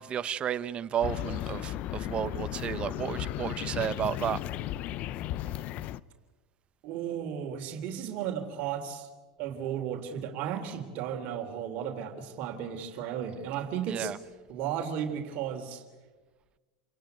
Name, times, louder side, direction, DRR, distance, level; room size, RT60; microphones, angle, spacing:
voice 1, 0.0-4.4 13.9-14.2, right 9 dB, 35° right, 1.2 m, -32 dB
sound 1, 1.0-6.0, left 13 dB, 50° left, 0.8 m, -35 dB
voice 2, 6.8-9.1 9.4-14.1 14.5-15.8, right 8 dB, 55° right, 3.3 m, -34 dB
29.0 x 18.5 x 9.4 m
hypercardioid pair, 100°, 3 cm